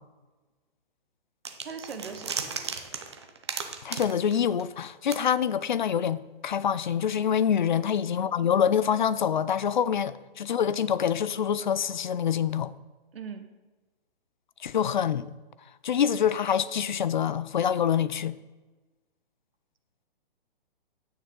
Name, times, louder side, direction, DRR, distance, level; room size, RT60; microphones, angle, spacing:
sound 1, 1.5-4.9 5.1-5.2, right 5 dB, 30° right, 0.6 m, -35 dB
voice 1, 1.6-2.8 13.1-13.5, right 6 dB, 80° right, 1.5 m, -40 dB
voice 2, 3.8-12.7 14.6-15.3 15.8-18.4, left 8 dB, 55° left, 0.4 m, -26 dB
10.0 x 9.0 x 3.8 m
hypercardioid pair, 180°, 29 cm